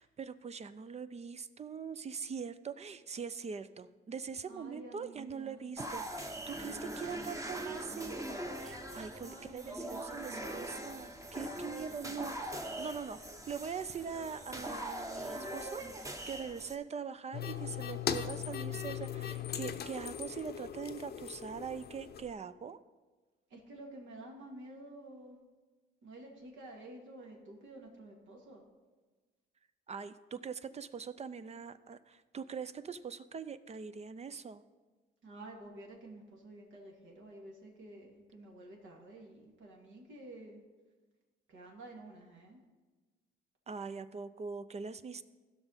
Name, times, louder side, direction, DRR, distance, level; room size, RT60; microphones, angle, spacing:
voice 1, 0.0-8.2 8.6-13.2 13.5-22.8 29.9-34.6 43.7-45.2, right 6 dB, 35° right, 13 dB, 0.5 m, -42 dB
voice 2, 4.5-5.7 9.2-10.9 23.5-25.4 26.0-28.6 35.2-40.6 41.5-42.6, right 1 dB, 75° right, -1 dB, 2.3 m, -51 dB
sound 1, 5.8-16.8, right 1 dB, 15° right, 1.0 m, -42 dB
sound 2, 17.3-22.3, left 9 dB, 55° left, 0.7 m, -39 dB
15.5 x 5.9 x 4.2 m, 1.3 s
cardioid pair, 90°, 20 cm